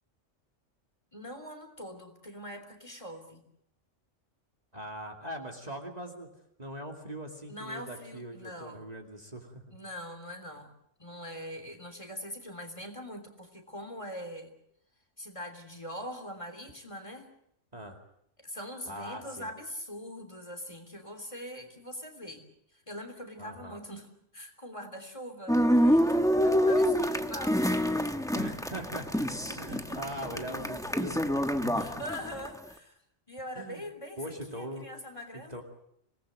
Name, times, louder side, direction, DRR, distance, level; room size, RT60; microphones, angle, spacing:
voice 1, 1.1-3.4 7.5-8.9 9.7-10.7 11.0-14.5 15.2-17.3 18.4-22.4 22.7-24.1 24.3-26.3 26.6-27.9 29.4-30.0 31.8-33.0 33.3-35.6, equal, 25° left, 5 dB, 3.4 m, -42 dB
voice 2, 4.7-6.3 6.6-9.7 17.7-18.0 18.9-19.5 23.4-23.8 28.3-32.0 33.5-33.8 34.2-34.9 35.3-35.6, right 1 dB, 35° right, 2 dB, 2.6 m, -41 dB
sound 1, 25.5-32.5, equal, 5° left, 1.1 m, -27 dB
26.5 x 19.0 x 7.6 m, 0.73 s
omnidirectional pair, 1.2 m